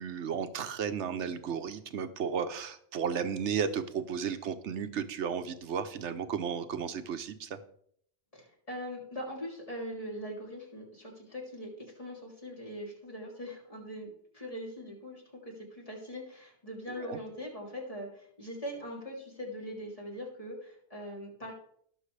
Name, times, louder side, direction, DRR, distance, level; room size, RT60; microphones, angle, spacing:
voice 1, 0.0-7.6 17.1-17.2, right 7 dB, 90° right, 10 dB, 1.1 m, -34 dB
voice 2, 8.3-21.5, equal, 30° left, -3 dB, 3.3 m, -41 dB
19.5 x 6.6 x 3.3 m, 0.65 s
omnidirectional pair, 1.2 m